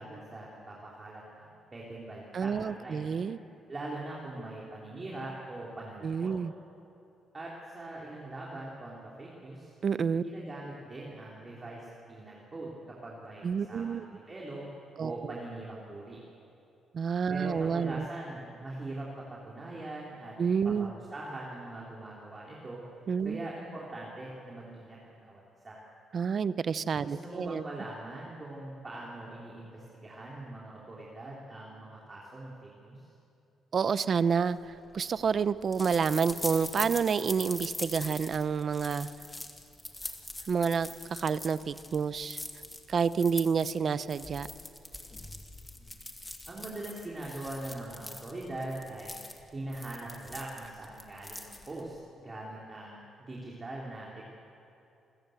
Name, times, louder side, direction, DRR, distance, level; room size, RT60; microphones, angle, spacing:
voice 1, 0.0-3.1 3.7-6.3 7.3-9.7 10.2-14.7 15.0-16.2 17.3-20.3 20.6-22.8 23.2-25.8 27.0-33.1 45.8-46.0 46.5-49.2 49.5-54.3, right 2 dB, 30° right, -4 dB, 3.6 m, -42 dB
voice 2, 2.3-3.4 6.0-6.5 9.8-10.2 13.4-14.1 15.0-15.3 16.9-18.1 20.4-20.9 23.1-23.5 26.1-27.7 33.7-39.1 40.5-42.4 42.9-44.5, right 6 dB, 50° right, 15 dB, 0.7 m, -29 dB
sound 1, 34.5-52.0, left 2 dB, 15° left, 2.0 m, -43 dB
27.5 x 14.0 x 8.0 m, 2.8 s
cardioid pair, 90°, 0 cm